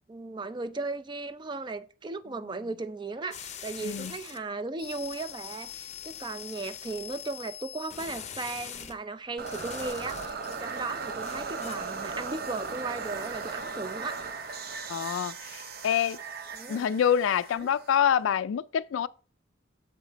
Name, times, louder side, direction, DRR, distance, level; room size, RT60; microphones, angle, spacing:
voice 1, 0.1-14.2 16.5-16.9 17.6-17.7, right 3 dB, 25° right, 0.4 m, -36 dB
sound 1, 3.3-4.4 4.8-9.0 9.5-10.6 11.0-11.7, left 9 dB, 35° left, 0.6 m, -42 dB
sound 2, 9.4-18.4, right 4 dB, 50° right, 0.7 m, -37 dB
voice 2, 14.9-16.2 16.7-19.1, left 8 dB, 75° left, 0.3 m, -26 dB
7.3 x 5.0 x 3.9 m
head